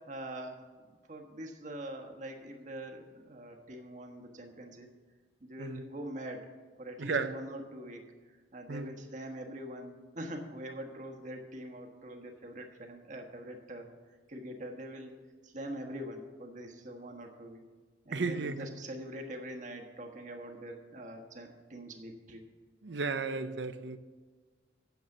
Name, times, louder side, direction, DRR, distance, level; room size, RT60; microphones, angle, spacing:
voice 1, 0.1-0.6 1.1-4.9 5.4-6.4 6.8-8.1 8.5-13.9 14.3-15.1 15.4-17.6 18.0-22.4, right 1 dB, 45° right, 1.4 m, -43 dB
voice 2, 7.0-7.3 8.7-8.9 18.1-18.7 22.8-24.0, right 4 dB, 75° right, 0.7 m, -34 dB
9.4 x 7.3 x 7.2 m
head